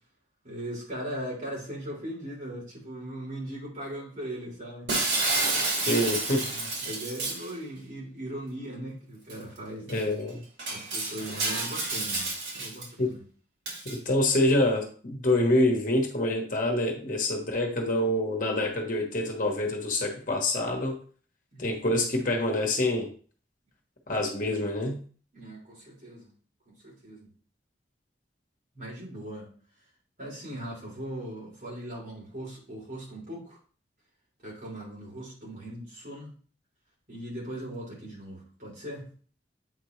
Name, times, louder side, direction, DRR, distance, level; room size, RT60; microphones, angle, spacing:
voice 1, 0.4-4.9 6.4-10.0 10.7-13.2 21.5-21.7 25.3-26.3 26.6-27.3 28.7-29.5 30.2-33.6 34.4-36.3 37.1-39.1, right 1 dB, 50° right, -5 dB, 3.4 m, -39 dB
Shatter, 4.9-7.5 9.3-9.4 9.9-10.0 10.6-12.9 13.7-14.0, right 2 dB, 75° right, 2.2 m, -30 dB
voice 2, 5.9-6.5 9.9-10.4 13.0-13.1 13.8-21.0 21.6-23.1 24.1-25.0, left 1 dB, 45° left, 1 dB, 1.2 m, -26 dB
7.8 x 4.4 x 3.2 m, 0.43 s
head